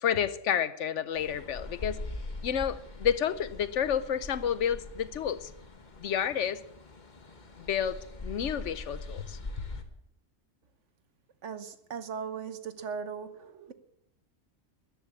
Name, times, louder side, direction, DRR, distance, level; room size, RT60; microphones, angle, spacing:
voice 1, 0.0-2.0 2.4-5.5 6.0-6.6 7.6-9.4, left 8 dB, 70° left, 15 dB, 1.1 m, -30 dB
sound 1, 1.1-9.8, left 2 dB, 40° left, 1.4 m, -42 dB
voice 2, 11.4-13.7, right 6 dB, 70° right, 11 dB, 1.4 m, -38 dB
13.5 x 10.5 x 8.5 m, 0.80 s
omnidirectional pair, 1.3 m